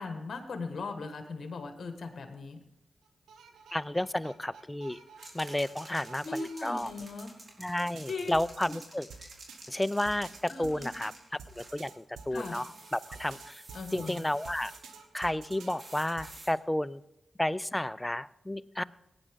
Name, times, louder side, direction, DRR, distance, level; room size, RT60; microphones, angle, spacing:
voice 1, 0.0-2.6 6.2-7.3 8.1-8.3 10.5-10.9 12.3-12.6 13.7-14.3, left 3 dB, 60° left, 6 dB, 1.5 m, -38 dB
sound 1, 3.1-7.6 7.9-16.4, right 5 dB, 90° right, 1.1 m, -51 dB
voice 2, 3.7-5.0 5.3-6.9 7.6-9.1 9.7-13.6 13.9-14.7 15.1-17.0 17.4-18.8, left 1 dB, 15° left, 19 dB, 0.5 m, -32 dB
sound 2, 5.2-11.8 12.4-14.9 15.8-16.5, right 2 dB, 40° right, 3.9 m, -51 dB
18.0 x 9.7 x 3.6 m, 0.91 s
supercardioid pair, 40°, 0 cm